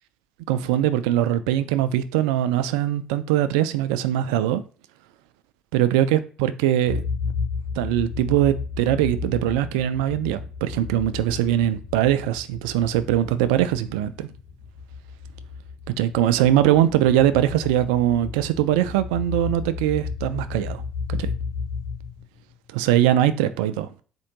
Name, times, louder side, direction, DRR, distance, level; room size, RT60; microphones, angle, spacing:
voice 1, 0.5-4.6 5.7-7.0 7.8-14.3 16.0-20.8 21.1-21.3 22.7-23.9, right 12 dB, 70° right, 0.3 m, -21 dB
sound 1, 6.9-22.5, left 5 dB, 65° left, 1.5 m, -33 dB
4.3 x 2.4 x 2.9 m
figure-of-eight pair, 50°, 4 cm